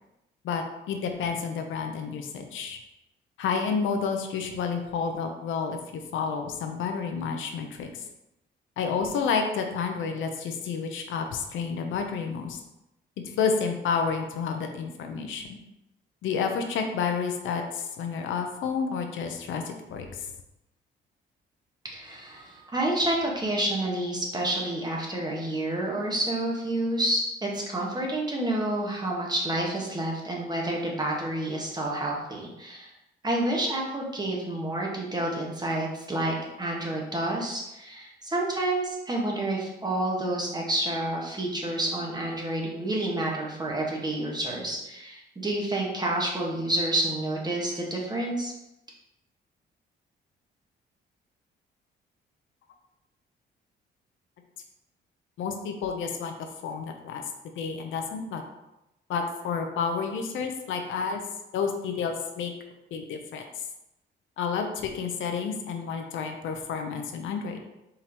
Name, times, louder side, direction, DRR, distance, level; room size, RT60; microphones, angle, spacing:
voice 1, 0.4-2.8 3.4-7.9 8.8-12.6 13.4-15.6 16.2-20.2 55.4-57.2 57.6-58.4 59.1-61.2 61.5-62.5 62.9-63.4 64.4-67.6, left 5 dB, 80° left, 4 dB, 0.7 m, -30 dB
voice 2, 21.9-32.9 33.2-48.5, right 1 dB, 20° right, -2 dB, 1.2 m, -29 dB
4.5 x 3.8 x 2.9 m, 0.90 s
cardioid pair, 90°, 20 cm